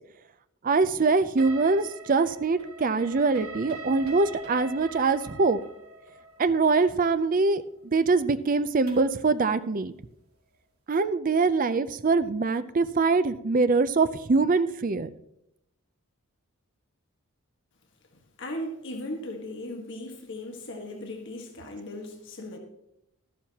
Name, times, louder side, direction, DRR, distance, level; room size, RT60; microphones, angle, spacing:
voice 1, 0.6-5.6 6.4-9.9 10.9-15.1, right 4 dB, 40° right, 0.5 m, -23 dB
sound 1, 1.4-9.2, right 2 dB, 85° right, 2.4 m, -44 dB
voice 2, 18.4-22.6, left 1 dB, 55° left, 1.6 m, -37 dB
13.0 x 11.5 x 2.9 m
head